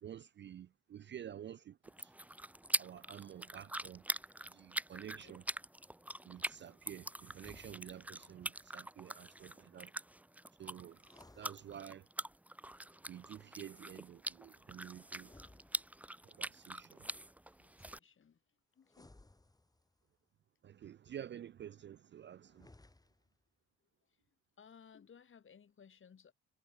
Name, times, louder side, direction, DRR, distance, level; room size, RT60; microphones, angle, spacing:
voice 1, 0.0-2.1 2.8-4.0 4.4-5.4 6.3-9.9 10.6-11.0 11.4-12.1 13.1-15.3 16.2-17.1 20.6-22.7, right 10 dB, 40° right, 0.4 m, -50 dB
sound 1, 1.8-18.0, right 1 dB, 5° right, 0.7 m, -44 dB
sound 2, 7.3-8.2 10.9-12.3 15.1-16.3 18.8-20.1 22.4-23.4, left 2 dB, 10° left, 2.7 m, -62 dB
voice 2, 17.4-18.4 18.7-19.1 24.0-24.2 24.6-26.3, left 7 dB, 40° left, 2.0 m, -61 dB
cardioid pair, 90°, 30 cm